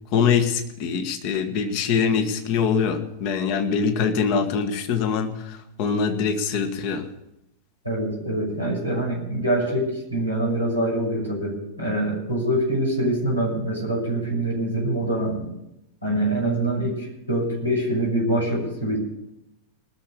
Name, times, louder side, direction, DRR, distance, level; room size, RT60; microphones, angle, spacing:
voice 1, 0.1-7.1, left 6 dB, 45° left, 8 dB, 1.4 m, -23 dB
voice 2, 7.8-15.5 16.0-19.0, right 1 dB, 85° left, -4 dB, 6.2 m, -25 dB
20.0 x 6.9 x 7.1 m, 0.88 s
figure-of-eight pair, 90°, 0 cm